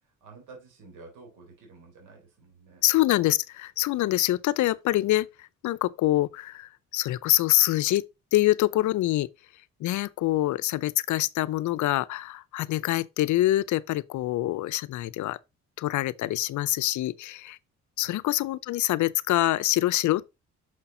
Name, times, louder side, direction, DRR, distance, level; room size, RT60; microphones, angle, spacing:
voice 1, 0.0-2.8 18.0-18.2, right 4 dB, 90° right, 3.6 m, -50 dB
voice 2, 2.8-8.0 8.3-9.3 9.8-15.4 15.8-17.6 18.0-20.3, left 16 dB, 70° left, 0.5 m, -25 dB
6.4 x 5.8 x 3.8 m
cardioid pair, 90°, 30 cm